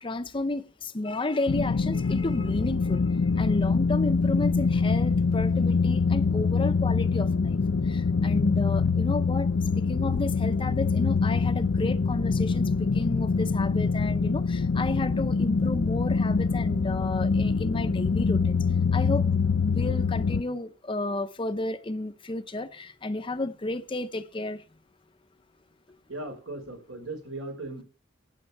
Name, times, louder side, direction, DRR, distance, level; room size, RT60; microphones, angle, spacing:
voice 1, 0.0-7.6 7.8-18.6 18.9-19.3 19.6-24.6, left 2 dB, 25° left, 0.6 m, -32 dB
sound 1, 1.5-20.4, left 4 dB, 70° left, 0.5 m, -25 dB
voice 2, 26.1-27.8, right 2 dB, 75° right, 4.8 m, -37 dB
12.5 x 9.2 x 5.8 m
head